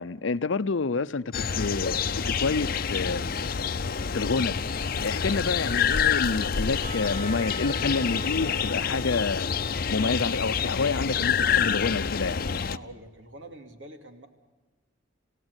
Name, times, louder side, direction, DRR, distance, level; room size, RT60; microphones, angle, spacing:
voice 1, 0.0-3.3 4.1-4.6 5.0-9.5 9.9-12.5, left 4 dB, 90° left, 0.7 m, -28 dB
sound 1, 1.3-12.8, left 6 dB, 50° left, 0.7 m, -27 dB
Percussion / Church bell, 6.8-10.8, equal, 25° right, 2.9 m, -44 dB
voice 2, 12.7-14.3, right 1 dB, 85° right, 2.7 m, -45 dB
27.5 x 17.0 x 8.2 m
head